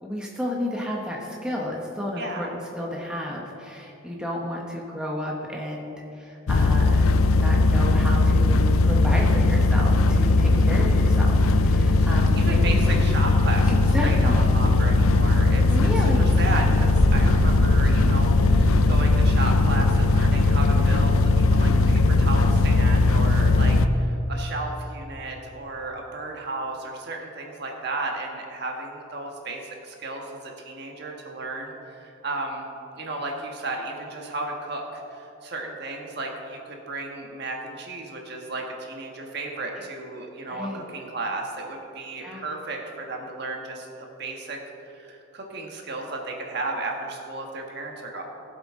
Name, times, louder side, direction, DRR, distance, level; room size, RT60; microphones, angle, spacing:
voice 1, 0.0-2.5 2.7-12.9 13.7-14.6 15.7-16.5 39.7-39.9 40.5-40.8 42.2-42.5, left 1 dB, 5° right, -2 dB, 1.0 m, -32 dB
voice 2, 2.2-2.5 10.5-10.8 11.9-12.1 12.3-32.7 32.9-43.9 44.2-44.6 44.9-48.2, right 2 dB, 50° right, 1 dB, 1.4 m, -34 dB
sound 1, 6.5-23.9, left 2 dB, 80° left, 0.5 m, -19 dB
sound 2, 11.9-18.8, equal, 20° right, 1.4 m, -31 dB
18.0 x 8.0 x 3.7 m, 2.9 s
head